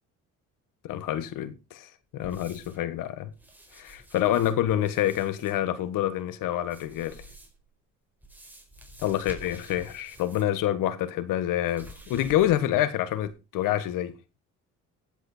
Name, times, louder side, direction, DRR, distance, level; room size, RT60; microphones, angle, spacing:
voice 1, 0.8-3.3 3.7-7.2 9.0-14.1, left 12 dB, 80° left, 1.6 m, -27 dB
sound 1, 2.2-2.9 3.3-5.6 6.6-7.7 8.2-10.6 10.9-11.0 11.7-12.8 13.2-13.3, right 1 dB, 5° right, 4.4 m, -49 dB
15.0 x 8.0 x 4.4 m
cardioid pair, 85°, 32 cm